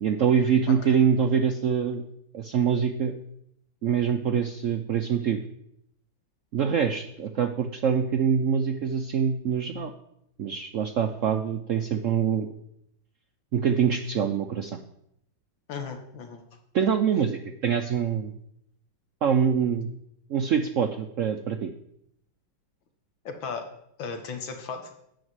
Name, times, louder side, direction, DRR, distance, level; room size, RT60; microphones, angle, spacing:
voice 1, 0.0-2.0 2.3-3.1 3.8-5.4 6.5-9.9 10.4-12.5 13.5-14.8 16.7-18.3 19.2-19.9 20.3-21.7, right 7 dB, 70° right, 6 dB, 0.7 m, -24 dB
voice 2, 15.7-16.4 23.3-23.7 24.0-24.9, left 5 dB, 85° left, 5 dB, 2.1 m, -35 dB
9.1 x 6.0 x 8.0 m, 0.76 s
omnidirectional pair, 2.1 m